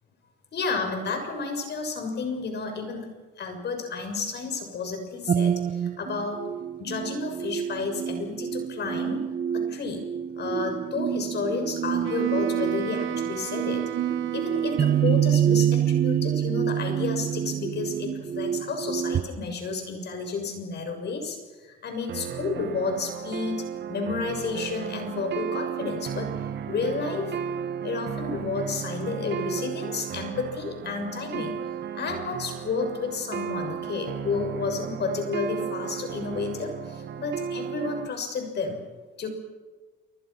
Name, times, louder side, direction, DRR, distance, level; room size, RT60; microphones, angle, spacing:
voice 1, 0.5-6.5 6.8-9.3 9.5-10.0 10.4-13.8 14.3-26.3 26.7-27.3 27.8-31.6 31.9-38.8 39.2-39.3, left 4 dB, 60° left, 5 dB, 6.8 m, -31 dB
sound 1, 5.3-19.2, right 9 dB, 45° right, 1.0 m, -27 dB
Wind instrument woodwind instrument, 12.0-15.6, right 11 dB, 85° right, 1.5 m, -35 dB
sound 2, 22.1-38.1, right 8 dB, 65° right, 1.5 m, -34 dB
28.0 x 25.0 x 5.8 m, 1.3 s
cardioid pair, 90°, 20 cm